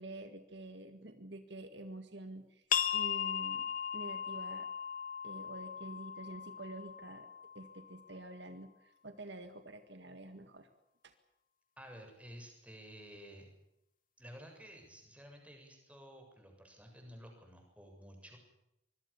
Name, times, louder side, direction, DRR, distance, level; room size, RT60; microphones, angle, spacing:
voice 1, 0.0-2.7 2.9-4.7 5.2-7.3 7.5-10.7 11.0-11.1, right 1 dB, 55° right, 8 dB, 2.0 m, -48 dB
sound 1, 2.7-8.1, left 8 dB, 40° left, 1.4 m, -37 dB
voice 2, 11.8-13.5 14.2-18.4, equal, 5° right, 3 dB, 7.2 m, -53 dB
25.0 x 22.5 x 7.1 m, 0.84 s
head